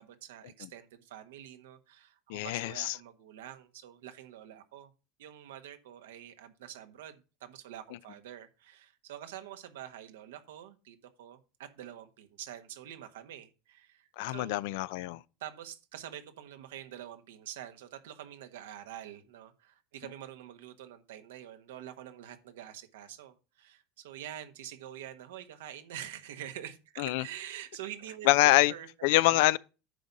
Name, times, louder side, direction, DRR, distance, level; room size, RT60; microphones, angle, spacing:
voice 1, 0.0-4.9 5.2-14.6 15.4-28.9 29.2-29.4, right 11 dB, 90° right, 1.4 m, -46 dB
voice 2, 2.3-2.9 14.2-15.2 27.0-27.2 28.3-28.7 29.0-29.6, left 19 dB, 75° left, 0.5 m, -25 dB
10.0 x 4.0 x 7.1 m
supercardioid pair, 110°, 0 cm